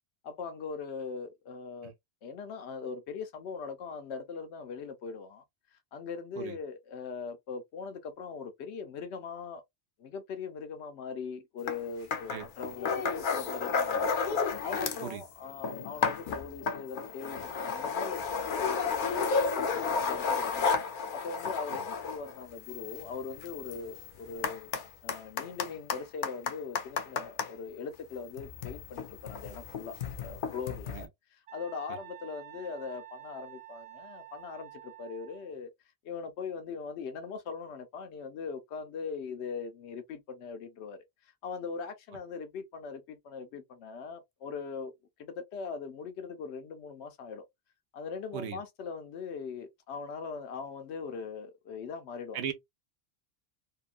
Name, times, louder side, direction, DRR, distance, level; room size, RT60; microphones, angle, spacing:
voice 1, 0.2-1.9 2.2-5.4 5.7-9.6 10.0-24.7 25.0-35.7 36.0-44.9 45.2-47.4 47.9-52.4, left 5 dB, 85° left, 0.9 m, -41 dB
voice 2, 1.8-1.9 6.4-6.6 12.3-12.4 15.0-15.2 30.9-31.1 48.3-48.6 52.3-52.5, right 9 dB, 90° right, 0.9 m, -37 dB
sound 1, 11.7-11.8 12.1-15.1 15.4-27.5 28.3-31.0, left 5 dB, 60° left, 0.6 m, -32 dB
Wind instrument woodwind instrument, 31.5-35.6, right 15 dB, 60° right, 0.9 m, -49 dB
2.8 x 2.2 x 2.3 m
omnidirectional pair, 1.1 m